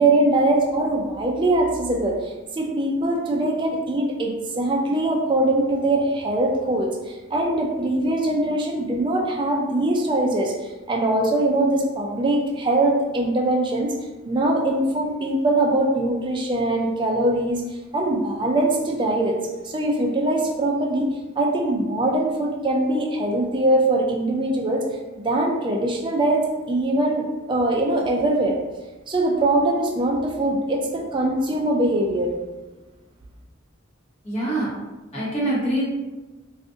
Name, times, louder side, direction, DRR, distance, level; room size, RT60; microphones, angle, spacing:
voice 1, 0.0-10.5 10.9-13.9 14.2-17.6 17.9-19.4 19.6-21.1 21.4-24.8 25.2-28.6 29.1-32.3, right 1 dB, 25° right, 0 dB, 0.4 m, -22 dB
voice 2, 34.2-34.7 35.1-35.9, right 1 dB, 30° left, -7 dB, 1.1 m, -24 dB
2.5 x 2.5 x 3.6 m, 1.2 s
head